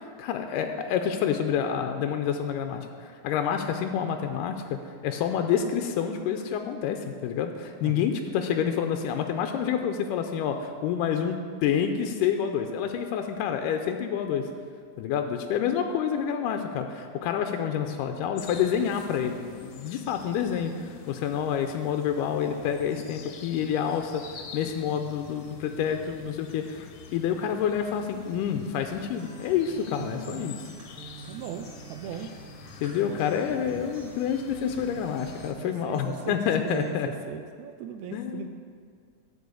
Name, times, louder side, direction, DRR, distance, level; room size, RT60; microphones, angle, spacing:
voice 1, 0.2-14.5 15.0-24.2 24.5-26.9 27.1-30.7 32.8-37.1 38.1-38.5, left 8 dB, 85° left, 6 dB, 2.2 m, -28 dB
sound 1, 18.4-35.5, left 6 dB, 70° left, 1.8 m, -47 dB
Acoustic guitar, 28.9-36.9, right 4 dB, 30° right, 0.6 m, -49 dB
voice 2, 30.0-30.5 31.2-32.3 33.0-33.8 35.6-36.4 36.6-36.9 37.3-38.5, right 9 dB, 85° right, 7 dB, 1.6 m, -39 dB
11.5 x 4.7 x 8.2 m, 2.1 s
omnidirectional pair, 3.7 m